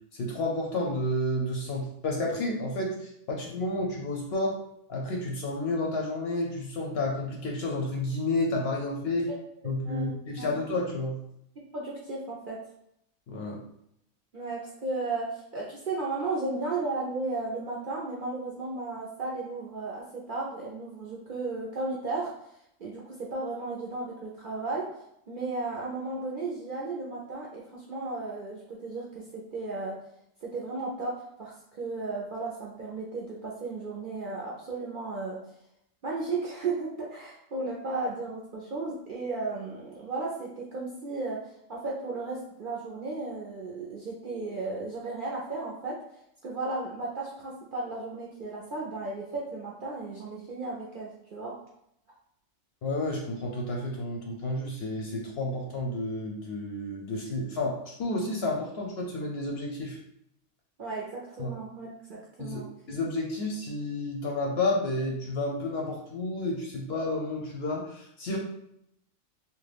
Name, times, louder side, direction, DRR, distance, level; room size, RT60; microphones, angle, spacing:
voice 1, 0.1-4.6 4.9-9.3 9.6-11.2 13.3-13.6 52.8-60.0 61.4-61.5 62.4-62.6 62.9-68.4, left 2 dB, 60° left, -1 dB, 0.7 m, -31 dB
voice 2, 9.9-10.6 11.7-12.6 14.3-22.3 22.8-24.9 25.3-30.0 30.4-35.4 36.0-41.4 41.7-46.0 46.4-51.6 60.8-62.7, right 3 dB, 55° right, -4 dB, 0.5 m, -34 dB
2.9 x 2.2 x 3.3 m, 0.76 s
omnidirectional pair, 1.4 m